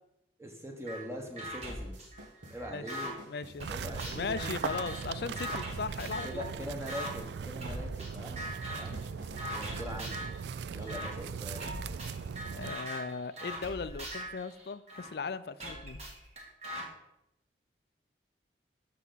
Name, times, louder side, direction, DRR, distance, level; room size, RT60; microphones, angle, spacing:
voice 1, 0.4-2.0 2.5-3.1 3.7-4.5 6.2-8.4 8.7-9.0 9.5-10.3 10.7-11.7, equal, 15° right, 2 dB, 1.2 m, -42 dB
sound 1, 0.9-1.0 1.4-3.1 3.6-6.4 6.9-7.1 7.6-8.1 8.4-8.9 9.4-10.4 10.9-11.1 11.6-15.1 15.6-16.8, equal, 35° right, 2.0 m, -41 dB
sound 2, 1.4-9.6, equal, 85° right, 1.5 m, -52 dB
voice 2, 3.3-6.7 8.9-9.1 10.7-10.8 12.5-16.0, left 4 dB, 60° left, 14 dB, 0.4 m, -38 dB
sound 3, 3.6-12.8, right 6 dB, 70° right, 0.3 m, -39 dB
13.0 x 5.7 x 4.0 m, 0.86 s
head